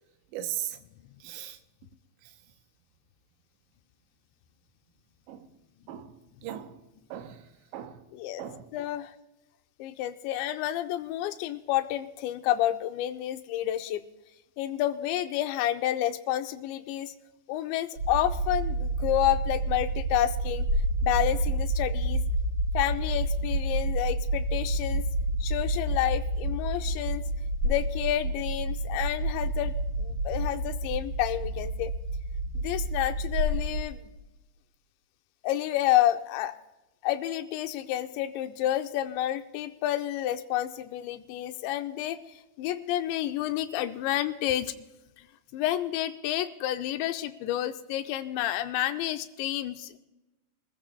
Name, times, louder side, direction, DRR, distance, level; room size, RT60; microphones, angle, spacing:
voice 1, 0.3-0.8 1.2-1.6 5.3-5.5 5.9-6.8 7.1-7.4 7.7-8.0 8.4-8.7, right 11 dB, 80° right, 8 dB, 2.9 m, -38 dB
voice 2, 8.1-8.4 8.7-9.1 9.8-14.0 14.6-17.1 17.5-20.7 21.0-22.2 22.7-25.1 25.4-27.2 27.6-29.7 30.0-31.9 32.5-34.0 35.4-36.6 37.0-44.7 45.2-45.3 45.5-50.0, left 13 dB, 85° left, 8 dB, 2.6 m, -29 dB
sound 1, 18.0-33.8, right 1 dB, 40° right, 2.6 m, -29 dB
24.5 x 14.5 x 2.3 m, 1.0 s
omnidirectional pair, 5.5 m